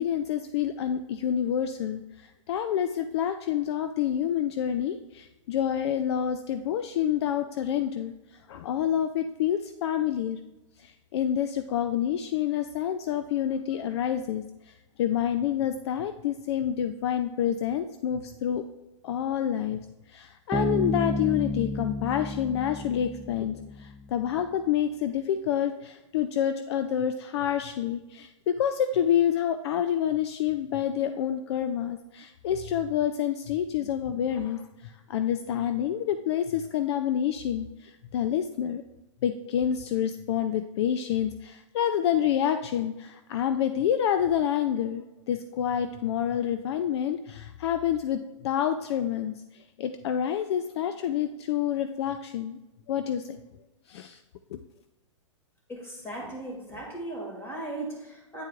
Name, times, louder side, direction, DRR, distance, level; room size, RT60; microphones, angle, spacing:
voice 1, 0.0-10.4 10.8-18.6 19.0-38.8 39.2-52.6 52.9-53.4 53.9-54.2 54.5-54.6, left 9 dB, 55° left, 9 dB, 0.4 m, -28 dB
Bass guitar, 20.5-24.0, left 1 dB, 5° right, 0.6 m, -31 dB
voice 2, 55.7-58.4, right 2 dB, 15° left, -2 dB, 2.3 m, -37 dB
9.1 x 4.5 x 2.4 m, 1.0 s
hypercardioid pair, 130°, 17 cm